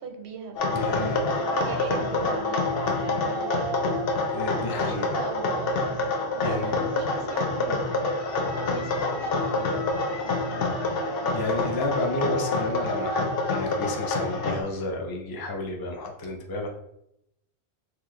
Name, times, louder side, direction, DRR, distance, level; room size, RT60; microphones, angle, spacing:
voice 1, 0.0-2.6 2.9-3.7 4.7-8.2 8.5-9.8 10.1-10.9 11.2-11.4, right 5 dB, 85° right, 4 dB, 0.9 m, -40 dB
sound 1, 0.6-14.6, left 2 dB, 65° left, 0.7 m, -27 dB
voice 2, 0.6-1.2 4.3-5.1 6.4-6.8 11.3-16.7, left 2 dB, 35° left, 2 dB, 0.3 m, -31 dB
2.9 x 2.4 x 3.6 m, 0.79 s
omnidirectional pair, 1.1 m